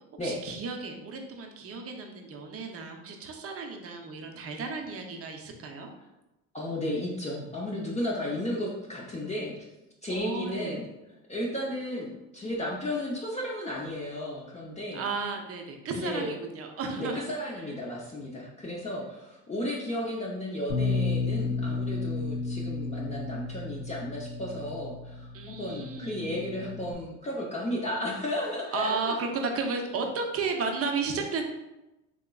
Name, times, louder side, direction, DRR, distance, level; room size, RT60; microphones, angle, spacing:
voice 1, 0.2-5.9 10.1-10.8 14.9-17.2 25.3-26.2 28.7-31.4, right 4 dB, 35° right, 3 dB, 0.6 m, -33 dB
voice 2, 6.5-9.7 10.0-10.9 11.3-15.0 15.9-16.3 17.0-29.3, left 1 dB, 15° left, -4 dB, 0.6 m, -34 dB
Bass guitar, 20.7-26.9, left 3 dB, 80° left, 0.6 m, -33 dB
3.6 x 2.9 x 2.3 m, 0.97 s
supercardioid pair, 75°, 41 cm